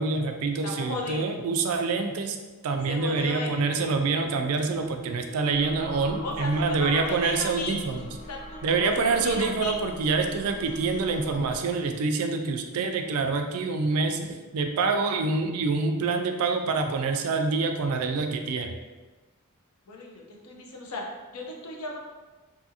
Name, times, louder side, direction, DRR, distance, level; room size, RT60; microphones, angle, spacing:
voice 1, 0.0-2.4 2.6-8.1 8.6-18.7, right 4 dB, 75° right, 5 dB, 0.3 m, -26 dB
voice 2, 0.6-1.3 2.9-3.5 6.2-7.8 8.3-9.7 19.9-21.0 21.3-22.0, left 2 dB, 85° left, 0 dB, 0.6 m, -35 dB
sound 1, 2.8-11.9, left 3 dB, 20° right, 0.7 m, -48 dB
sound 2, 5.5-12.0, left 1 dB, 30° left, 1.0 m, -44 dB
2.6 x 2.5 x 2.7 m, 1.2 s
head